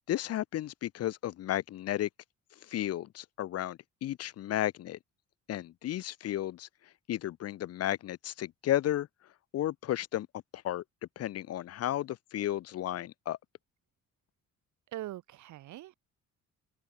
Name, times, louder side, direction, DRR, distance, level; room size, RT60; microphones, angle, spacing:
voice 1, 0.1-2.1 2.7-5.0 5.5-6.7 7.1-9.1 9.5-10.3 10.5-10.8 11.2-13.4, left 13 dB, 55° left, 0.5 m, -33 dB
voice 2, 14.9-15.9, right 14 dB, 70° right, 0.8 m, -42 dB
open air
cardioid pair, 90°, 30 cm